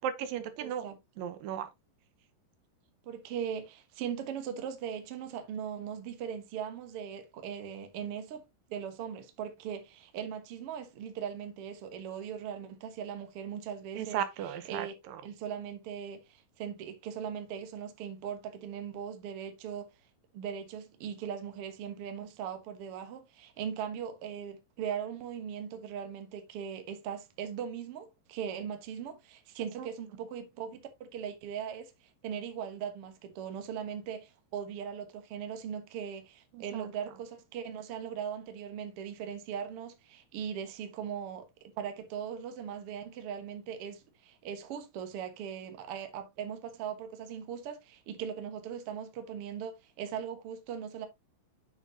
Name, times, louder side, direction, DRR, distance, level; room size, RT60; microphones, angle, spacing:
voice 1, 0.0-0.9 1.2-1.7 14.0-15.2 29.8-29.9 36.5-36.9, right 9 dB, 75° right, 2.5 m, -36 dB
voice 2, 0.6-1.0 3.0-14.2 14.7-14.9 15.2-19.9 20.3-31.9 32.2-41.5 41.8-51.1, right 8 dB, 60° right, 1.6 m, -39 dB
8.0 x 6.7 x 2.7 m
omnidirectional pair, 4.2 m